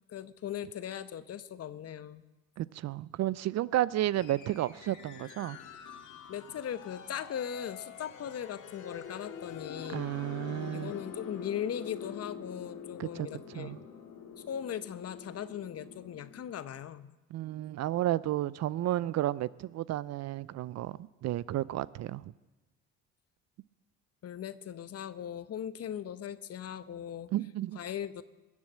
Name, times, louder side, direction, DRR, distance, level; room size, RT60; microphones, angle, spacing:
voice 1, 0.1-2.2 6.3-10.1 10.7-13.7 14.5-17.1 24.2-27.3 27.8-28.2, left 9 dB, 45° left, 0.9 m, -39 dB
voice 2, 2.6-5.6 9.9-10.9 13.0-13.3 13.5-13.8 17.3-22.3 27.3-27.8, right 14 dB, 55° right, 0.5 m, -32 dB
sound 1, 4.1-16.4, left 6 dB, 65° left, 2.0 m, -46 dB
20.5 x 7.2 x 7.4 m
hypercardioid pair, 65°, 33 cm